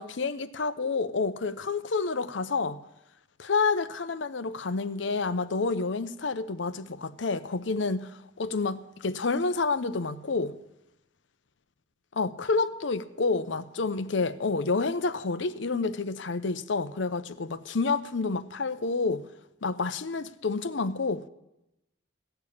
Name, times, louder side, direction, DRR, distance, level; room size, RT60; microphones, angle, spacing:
voice 1, 0.0-2.8 3.4-10.5 12.1-19.2 19.6-21.2, left 4 dB, 70° left, 0.7 m, -29 dB
16.0 x 6.9 x 8.4 m
head